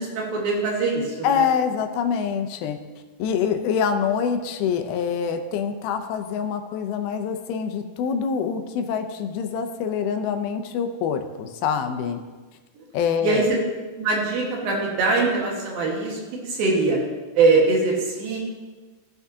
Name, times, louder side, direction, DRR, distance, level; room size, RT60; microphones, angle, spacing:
voice 1, 0.0-1.4 12.8-12.9 13.2-13.4 14.0-17.0 17.3-18.4, right 3 dB, 75° right, -2 dB, 3.3 m, -22 dB
voice 2, 1.2-2.8 3.2-12.2 12.9-13.5, left 7 dB, 85° left, 6 dB, 2.6 m, -25 dB
16.5 x 5.9 x 2.8 m, 1.3 s
omnidirectional pair, 4.3 m